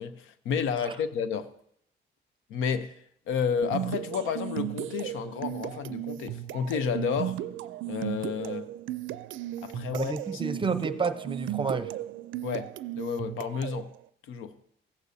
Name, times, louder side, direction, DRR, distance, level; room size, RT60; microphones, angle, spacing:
voice 1, 0.0-1.5 2.5-7.4 7.9-8.7 9.6-10.4 12.4-13.9 14.2-14.6, left 6 dB, 90° left, 0.7 m, -31 dB
sound 1, 3.6-13.9, right 13 dB, 75° right, 0.4 m, -35 dB
voice 2, 9.9-11.9, right 4 dB, 25° right, 0.7 m, -30 dB
16.0 x 8.1 x 2.7 m
cardioid pair, 90°, 20 cm